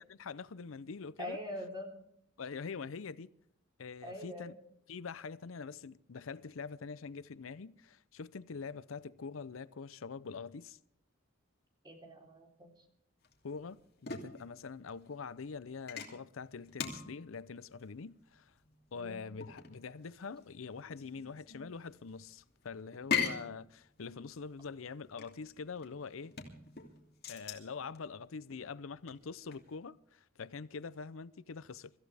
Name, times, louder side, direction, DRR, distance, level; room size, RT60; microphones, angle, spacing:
voice 1, 0.0-1.4 2.4-3.3 3.8-4.5 4.9-10.8 13.4-18.5 18.9-26.3 27.3-31.9, left 5 dB, 85° left, 0.6 m, -44 dB
voice 2, 1.2-1.9 4.0-4.6 11.8-12.8 18.9-19.2, left 1 dB, 20° right, 3.6 m, -43 dB
sound 1, 13.2-29.8, left 6 dB, 50° left, 2.8 m, -42 dB
25.0 x 14.5 x 3.4 m
head